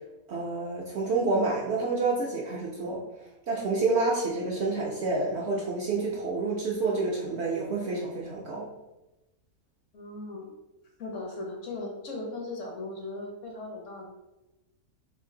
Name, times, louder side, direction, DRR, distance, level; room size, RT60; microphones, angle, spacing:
voice 1, 0.3-3.0 3.5-8.7, right 3 dB, 65° right, -3 dB, 0.7 m, -28 dB
voice 2, 9.9-10.5 11.0-14.1, left 2 dB, 65° left, 0 dB, 1.0 m, -38 dB
3.2 x 2.5 x 3.6 m, 1.0 s
omnidirectional pair, 1.5 m